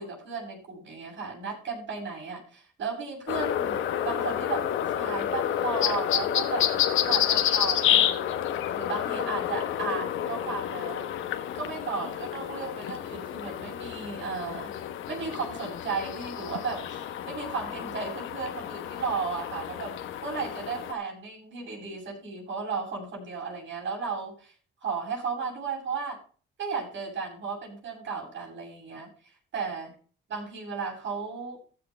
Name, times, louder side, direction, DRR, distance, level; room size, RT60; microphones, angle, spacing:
voice 1, 0.0-6.7 7.0-8.4 8.7-11.1 11.5-14.7 15.1-20.0 20.2-24.5 24.8-26.2 26.6-29.9 30.3-31.6, right 5 dB, 70° right, 1 dB, 7.6 m, -34 dB
sound 1, 3.3-20.9, left 11 dB, 85° left, 1.1 m, -29 dB
15.5 x 6.5 x 4.5 m, 0.39 s
cardioid pair, 90°, 20 cm